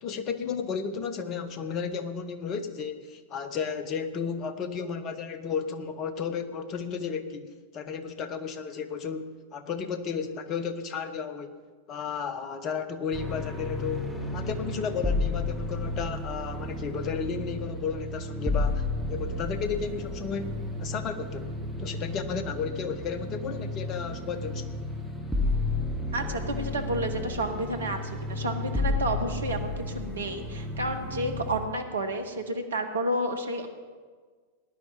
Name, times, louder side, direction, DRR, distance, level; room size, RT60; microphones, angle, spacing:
voice 1, 0.0-11.5 11.9-24.7, left 6 dB, 35° left, 10 dB, 1.2 m, -33 dB
sound 1, 13.1-31.6, left 2 dB, ahead, 2.1 m, -32 dB
voice 2, 26.1-33.7, right 1 dB, 75° right, 6 dB, 1.4 m, -31 dB
19.0 x 10.5 x 4.4 m, 1.5 s
figure-of-eight pair, 90°, 0 cm